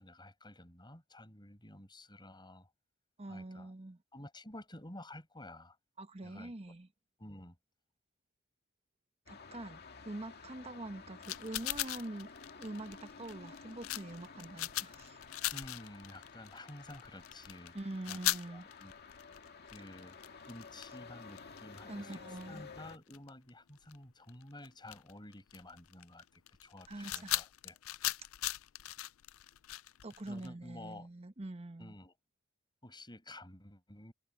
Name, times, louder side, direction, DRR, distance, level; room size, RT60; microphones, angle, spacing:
voice 1, 0.0-2.7 3.3-3.7 4.1-5.8 6.2-6.5 7.2-7.6 15.5-17.8 18.1-18.2 18.5-18.9 19.7-20.2 20.5-27.8 30.2-31.1 31.8-32.1 32.8-34.1, left 1 dB, 20° left, 7.4 m, -51 dB
voice 2, 3.2-4.0 6.0-6.9 9.3-9.8 10.0-12.3 12.6-15.2 17.7-18.6 21.9-22.6 26.9-27.4 30.0-31.9, right 1 dB, 30° right, 1.2 m, -44 dB
sound 1, 9.3-23.0, left 5 dB, 50° left, 2.1 m, -53 dB
sound 2, 11.2-23.5 23.8-24.0 24.3-30.5, left 16 dB, 80° left, 0.5 m, -40 dB
open air
head